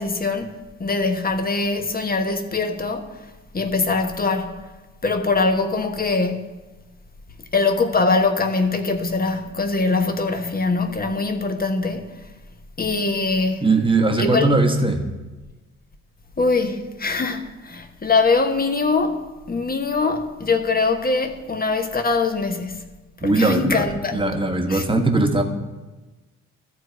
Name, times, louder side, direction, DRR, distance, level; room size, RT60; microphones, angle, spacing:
voice 1, 0.0-3.2 3.5-4.6 5.0-6.5 7.5-12.2 12.8-13.7 14.2-14.6 16.4-22.9 23.2-24.2 24.7-24.8, left 3 dB, 20° left, 1.2 m, -22 dB
voice 2, 13.6-15.0 23.2-25.4, right 2 dB, 10° right, 1.4 m, -20 dB
13.0 x 4.6 x 7.9 m
figure-of-eight pair, 45°, 42 cm